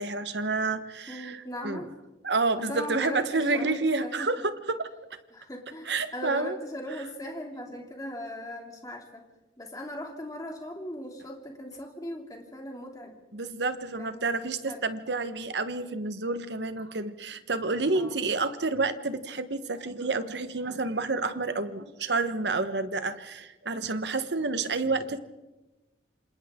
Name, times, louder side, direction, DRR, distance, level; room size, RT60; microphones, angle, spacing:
voice 1, 0.0-1.9 2.2-4.9 5.8-6.6 6.9-7.0 13.3-25.2, right 3 dB, 75° right, 11 dB, 1.2 m, -29 dB
voice 2, 1.1-1.9 2.6-4.3 5.3-9.2 9.6-13.2 14.0-14.9 17.9-18.2, equal, 20° left, 2 dB, 2.7 m, -39 dB
27.5 x 27.0 x 3.7 m, 1.1 s
head